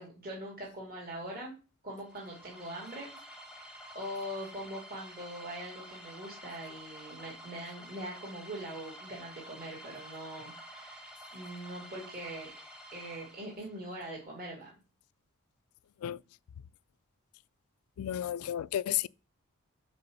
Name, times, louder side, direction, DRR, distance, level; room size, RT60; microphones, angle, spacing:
voice 1, 0.0-1.5 1.8-3.1 3.5-12.5 12.9-14.7, right 1 dB, 40° right, 2.4 m, -42 dB
sound 1, 2.0-13.9, equal, 5° right, 0.9 m, -50 dB
voice 2, 18.0-19.1, left 11 dB, 75° left, 0.3 m, -32 dB
5.9 x 4.5 x 6.2 m
head